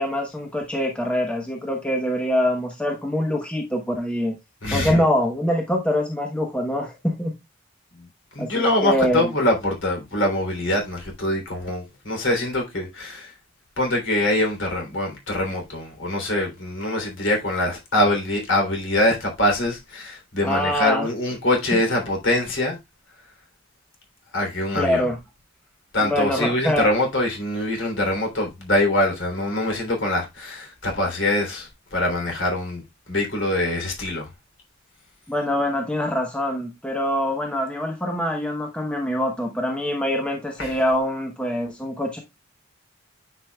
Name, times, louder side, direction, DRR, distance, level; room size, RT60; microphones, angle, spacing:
voice 1, 0.0-4.3 4.7-7.3 8.4-9.3 20.4-21.1 21.7-21.8 24.7-25.2 26.0-26.9 35.3-42.2, equal, 5° left, 0.9 m, -24 dB
voice 2, 4.6-5.0 8.3-13.3 13.8-22.8 24.3-25.0 25.9-32.8 33.1-34.3 40.6-40.8, left 1 dB, 60° left, 3.1 m, -24 dB
9.3 x 5.2 x 2.2 m
head